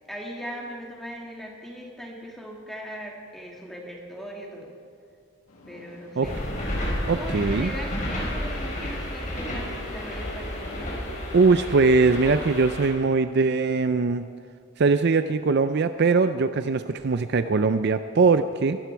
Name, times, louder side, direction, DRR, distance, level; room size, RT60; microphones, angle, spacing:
voice 1, 0.1-4.7 5.7-6.4 7.1-11.1, equal, ahead, -2 dB, 2.2 m, -39 dB
sound 1, 5.5-11.9, left 2 dB, 85° left, 2.1 m, -47 dB
sound 2, 6.2-12.9, equal, 35° left, 4.4 m, -31 dB
voice 2, 7.1-7.7 11.3-14.3 14.8-18.8, right 4 dB, 50° right, 10 dB, 0.4 m, -21 dB
23.5 x 13.0 x 4.6 m, 2.3 s
head